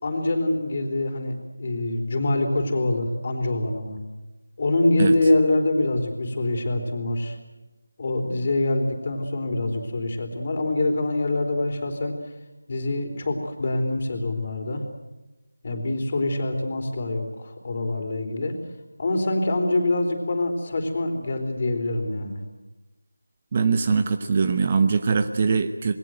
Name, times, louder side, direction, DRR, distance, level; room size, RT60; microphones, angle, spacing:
voice 1, 0.0-4.0 4.6-7.4 8.0-12.1 12.7-14.8 15.6-18.6 19.0-22.4, left 2 dB, 35° left, 4 dB, 3.9 m, -25 dB
voice 2, 23.5-26.0, right 5 dB, 25° right, 9 dB, 1.0 m, -22 dB
27.0 x 22.0 x 7.8 m, 1.1 s
figure-of-eight pair, 170°, 0 cm